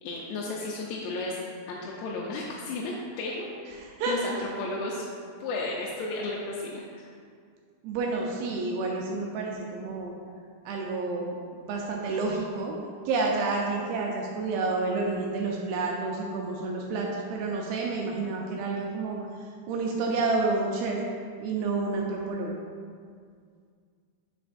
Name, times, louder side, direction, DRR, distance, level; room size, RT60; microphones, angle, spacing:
voice 1, 0.0-1.4 1.7-3.5 4.1-5.0 5.4-7.1, left 2 dB, 85° left, -3 dB, 2.8 m, -33 dB
voice 2, 3.7-4.2 7.8-10.1 10.7-12.8 13.1-21.0 21.4-22.6, right 3 dB, 85° right, -1 dB, 2.2 m, -29 dB
7.0 x 6.3 x 2.5 m, 2.1 s
omnidirectional pair, 4.8 m